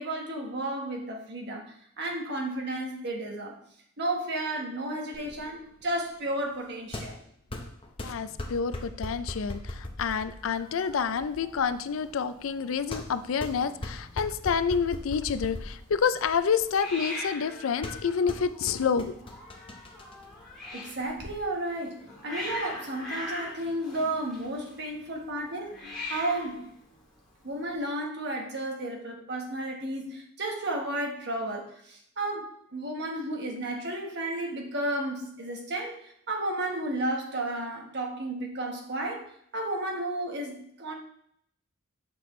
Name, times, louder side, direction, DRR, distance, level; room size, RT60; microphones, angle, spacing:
voice 1, 0.0-3.6 4.0-7.2 20.7-26.7 27.4-36.0 36.3-40.9, right 1 dB, 55° right, 1 dB, 1.3 m, -33 dB
sound 1, 5.1-21.3, left 1 dB, 25° left, 0.8 m, -41 dB
voice 2, 8.0-19.1, left 6 dB, 75° left, 12 dB, 0.4 m, -28 dB
Hiss, 10.4-27.8, left 2 dB, 5° left, 2.1 m, -43 dB
6.7 x 6.0 x 3.2 m, 0.69 s
head